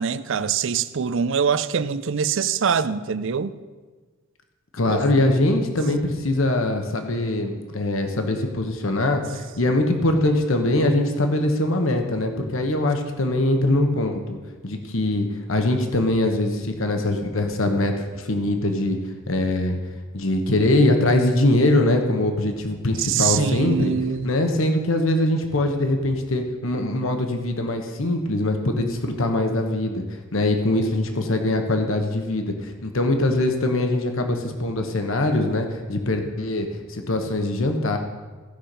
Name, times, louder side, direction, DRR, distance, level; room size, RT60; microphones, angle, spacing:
voice 1, 0.0-3.5 4.9-5.1 23.0-24.3, right 6 dB, 60° right, 15 dB, 0.5 m, -24 dB
voice 2, 4.7-14.4 14.6-19.0 19.3-19.8 20.1-23.9 24.2-30.0 30.3-38.0, left 1 dB, 65° left, 5 dB, 1.2 m, -22 dB
15.0 x 5.8 x 6.7 m, 1.4 s
head